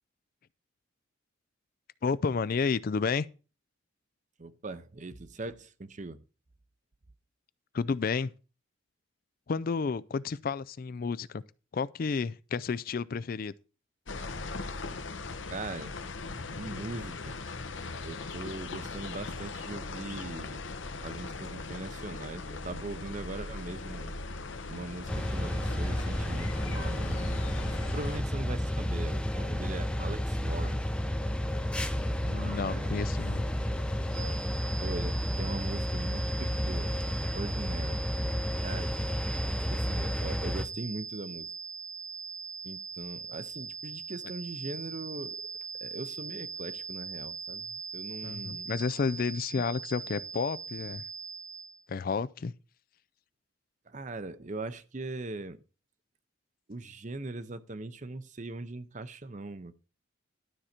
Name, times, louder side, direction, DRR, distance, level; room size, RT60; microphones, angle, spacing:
voice 1, 2.0-3.3 7.7-8.3 9.5-11.4 11.7-13.5 32.3-33.4 48.2-51.0 51.9-52.5, left 5 dB, 45° left, 0.4 m, -31 dB
voice 2, 4.4-6.2 15.5-16.0 16.6-17.4 18.0-20.6 21.0-24.2 24.7-30.8 32.2-33.1 34.1-34.4 34.8-38.1 38.6-39.0 39.7-41.5 42.6-45.4 45.8-48.7 53.9-55.6 56.7-59.7, right 2 dB, 35° right, 0.7 m, -40 dB
sound 1, 14.1-28.2, left 3 dB, 70° left, 1.0 m, -39 dB
sound 2, 25.1-40.7, equal, 5° left, 0.6 m, -31 dB
sound 3, 34.1-51.8, right 5 dB, 70° right, 1.2 m, -41 dB
12.5 x 6.3 x 4.4 m
head